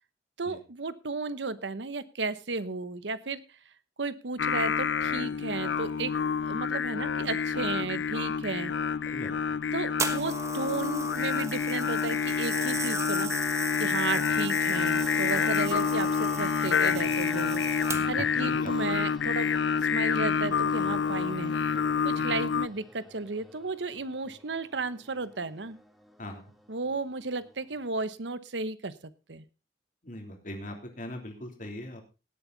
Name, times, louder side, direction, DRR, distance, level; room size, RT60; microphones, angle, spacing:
voice 1, 0.4-3.4 4.0-6.1 6.4-8.7 9.7-13.3 13.8-17.6 18.1-19.5 19.9-21.5 22.0-25.8 26.7-28.9 29.3-29.4, right 3 dB, 80° right, 14 dB, 1.0 m, -34 dB
Singing, 4.4-22.7, left 6 dB, 90° left, 0.6 m, -28 dB
voice 2, 9.1-9.6 17.8-18.7 22.2-22.4 26.2-26.5 30.0-32.0, left 1 dB, 45° left, 3 dB, 3.1 m, -41 dB
sound 1, 10.0-18.3 19.1-19.3, right 4 dB, 15° right, 1.3 m, -37 dB
sound 2, 14.7-27.9, equal, ahead, 1.5 m, -51 dB
18.0 x 8.3 x 4.0 m, 0.31 s
head